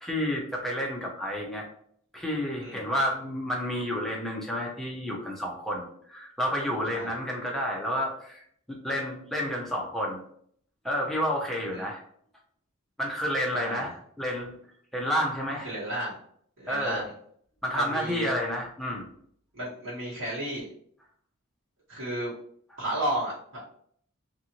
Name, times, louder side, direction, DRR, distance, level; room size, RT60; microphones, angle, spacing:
voice 1, 0.0-1.7 2.1-8.4 8.7-10.2 10.8-12.0 13.0-13.9 14.2-14.6 14.9-15.7 16.7-17.1 17.6-19.1, equal, ahead, -2 dB, 0.6 m, -30 dB
voice 2, 13.5-13.9 15.6-16.1 16.6-17.1 17.7-18.3 19.5-20.7 21.9-22.3 22.8-23.6, right 1 dB, 70° right, -8 dB, 1.3 m, -33 dB
2.6 x 2.6 x 2.9 m, 0.62 s
head